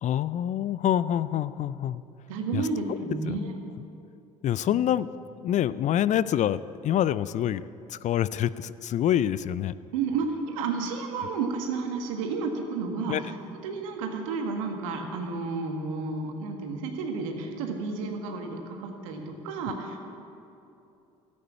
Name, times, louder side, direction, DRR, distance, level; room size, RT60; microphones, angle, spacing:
voice 1, 0.0-2.0 2.5-2.6 3.3-3.4 4.4-5.1 5.4-7.6 7.9-9.7 13.1-13.2, left 11 dB, 45° left, 17 dB, 0.4 m, -26 dB
voice 2, 2.3-3.6 4.7-4.8 9.9-13.3 13.6-20.0, right 4 dB, 80° right, 3 dB, 1.6 m, -31 dB
13.5 x 8.6 x 8.4 m, 2.8 s
hypercardioid pair, 60°, 17 cm